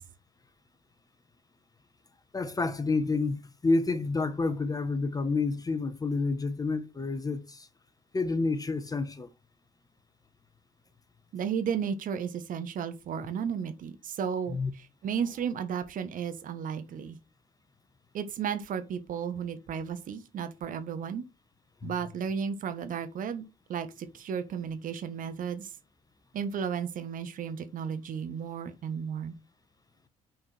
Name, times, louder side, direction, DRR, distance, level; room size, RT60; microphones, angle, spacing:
voice 1, 2.3-7.7 8.1-9.3 14.5-14.7 21.8-21.9, left 3 dB, 20° left, 1.1 m, -29 dB
voice 2, 11.3-17.2 18.1-21.2 21.8-23.4 23.7-25.7 26.3-29.3, right 7 dB, 50° right, 1.5 m, -34 dB
6.7 x 4.4 x 6.2 m
figure-of-eight pair, 55°, 18 cm